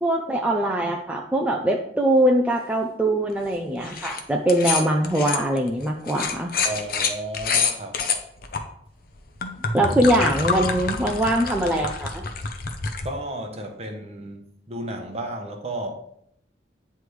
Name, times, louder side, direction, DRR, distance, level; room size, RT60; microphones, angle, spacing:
voice 1, 0.0-6.5 9.7-12.2, right 1 dB, 10° right, 0 dB, 0.4 m, -22 dB
sound 1, 3.8-4.2 4.5-8.6 9.2-13.1, left 5 dB, 55° left, 0.7 m, -27 dB
voice 2, 6.6-8.0 13.0-15.9, right 1 dB, 35° right, 3 dB, 0.9 m, -33 dB
9.4 x 3.4 x 3.2 m, 0.72 s
head